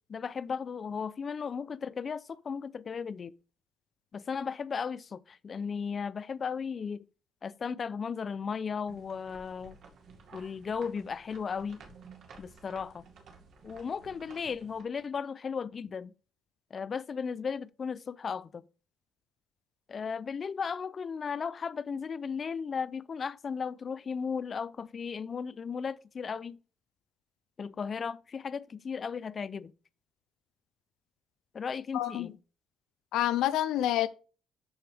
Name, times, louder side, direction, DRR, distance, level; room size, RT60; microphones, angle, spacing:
voice 1, 0.0-3.3 4.1-7.0 7.4-9.8 10.3-11.8 12.4-13.1 13.6-16.1 16.7-18.7 19.9-26.6 27.6-29.7 31.5-32.4, left 6 dB, 45° left, 0.5 m, -35 dB
sound 1, 8.9-14.8, right 4 dB, 65° right, 2.2 m, -54 dB
voice 2, 31.9-32.3 33.1-34.1, left 13 dB, 90° left, 0.5 m, -27 dB
12.5 x 4.4 x 3.4 m
cardioid pair, 90°, 0 cm